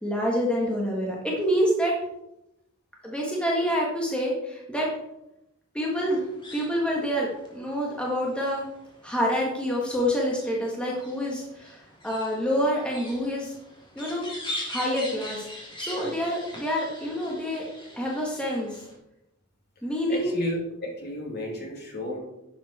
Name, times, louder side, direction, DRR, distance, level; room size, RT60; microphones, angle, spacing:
voice 1, 0.0-2.0 3.0-5.0 5.7-6.2 6.5-8.6 9.0-13.5 13.9-14.3 14.7-15.5 15.8-17.7 18.0-18.8 19.8-20.3, equal, 5° left, -3 dB, 1.6 m, -27 dB
sound 1, 5.9-18.9, left 1 dB, 20° left, 2.9 m, -42 dB
voice 2, 15.9-16.2 20.1-22.2, left 1 dB, 50° left, -1 dB, 2.9 m, -33 dB
11.0 x 7.5 x 4.3 m, 0.87 s
head